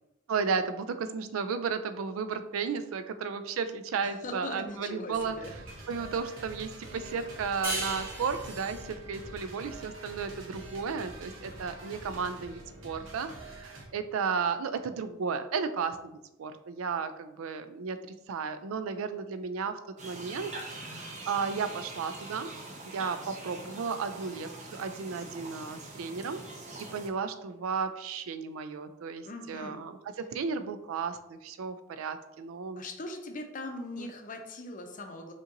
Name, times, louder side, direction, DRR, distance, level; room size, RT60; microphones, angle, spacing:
voice 1, 0.3-5.3 5.9-18.0 18.3-22.5 22.8-26.4 26.9-32.8 34.0-34.1, right 5 dB, 85° right, 10 dB, 0.4 m, -34 dB
voice 2, 4.0-5.5 29.2-29.8 32.8-35.3, left 2 dB, 40° left, 4 dB, 0.6 m, -40 dB
sound 1, 5.1-13.9, right 1 dB, 65° right, 1.0 m, -46 dB
sound 2, 7.6-10.8, right 1 dB, 15° right, 1.2 m, -38 dB
sound 3, 20.0-27.1, right 2 dB, 35° right, 0.8 m, -44 dB
5.3 x 2.9 x 2.6 m, 0.93 s
head